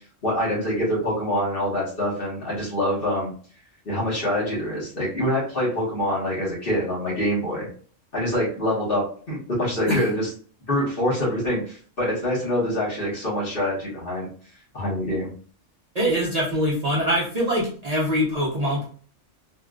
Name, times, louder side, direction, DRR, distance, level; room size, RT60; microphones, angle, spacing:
voice 1, 0.2-3.3 3.8-7.7 8.1-10.3 10.7-14.3 14.7-15.3, equal, 45° left, -6 dB, 1.6 m, -25 dB
voice 2, 15.9-18.9, equal, 35° right, -6 dB, 0.7 m, -23 dB
3.5 x 2.5 x 2.3 m, 0.43 s
omnidirectional pair, 1.3 m